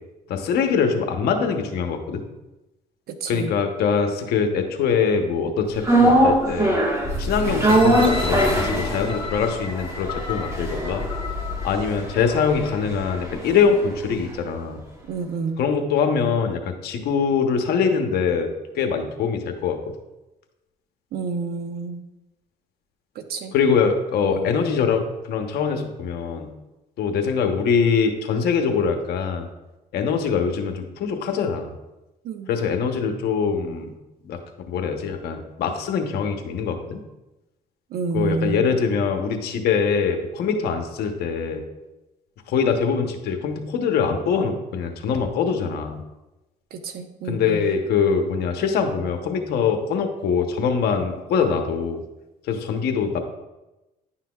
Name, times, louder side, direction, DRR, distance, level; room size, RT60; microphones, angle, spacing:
voice 1, 0.3-2.2 3.3-6.8 7.2-11.0 11.6-14.8 15.6-18.5 18.7-19.8 23.5-26.5 27.0-29.5 29.9-31.7 32.5-33.9 34.3-34.4 34.7-37.0 38.1-41.6 42.5-46.0 47.3-52.0 52.5-53.2, left 6 dB, 70° left, 5 dB, 1.0 m, -23 dB
voice 2, 3.1-3.5 15.0-15.6 21.1-22.0 23.1-23.5 24.3-24.5 32.2-32.5 37.9-38.7 46.7-47.7, right 4 dB, 65° right, 7 dB, 0.8 m, -29 dB
sound 1, 5.8-14.1 14.4-14.5, right 1 dB, 15° right, 1.5 m, -22 dB
sound 2, 7.6-12.6 13.1-13.2, left 4 dB, 30° left, 0.8 m, -35 dB
10.0 x 5.8 x 2.4 m, 1.0 s
cardioid pair, 110°, 17 cm